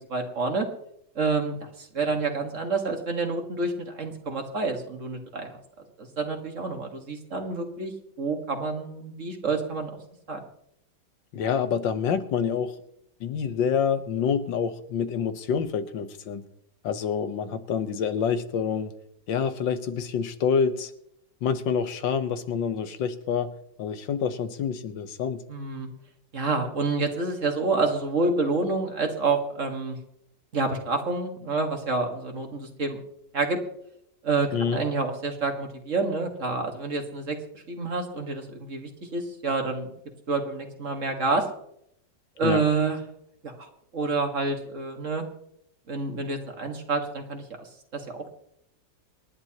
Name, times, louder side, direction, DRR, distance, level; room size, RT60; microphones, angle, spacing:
voice 1, 0.1-0.7 1.2-5.6 6.0-7.9 8.2-9.9 10.3-10.4 25.5-25.9 26.3-30.0 30.5-33.0 33.3-33.6 34.2-39.9 40.3-41.5 42.4-43.0 43.4-43.7 43.9-45.2 45.9-47.7 47.9-48.3, right 3 dB, 45° right, 4 dB, 2.0 m, -28 dB
voice 2, 11.3-12.8 13.2-16.4 16.8-18.9 19.3-20.9 21.4-23.5 23.8-25.4 34.5-34.8 42.4-42.7, left 7 dB, 85° left, 10 dB, 1.7 m, -27 dB
27.0 x 11.0 x 3.0 m, 0.75 s
omnidirectional pair, 2.0 m